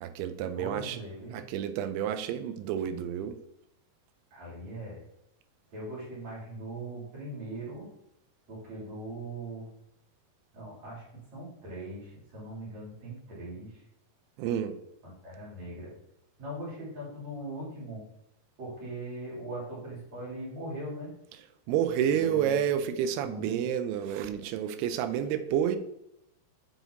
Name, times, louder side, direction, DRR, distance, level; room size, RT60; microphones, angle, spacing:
voice 1, 0.0-1.0 1.3-3.4 14.4-14.7 21.7-25.8, right 9 dB, 80° right, 10 dB, 2.5 m, -29 dB
voice 2, 0.5-1.4 4.3-5.0 5.7-7.9 8.5-9.7 10.5-11.1 11.3-13.8 15.0-15.9 16.4-18.0 18.6-21.1 22.0-22.6 23.2-23.6, right 1 dB, 45° right, -7 dB, 4.1 m, -40 dB
8.2 x 5.8 x 2.8 m, 0.81 s
omnidirectional pair, 4.7 m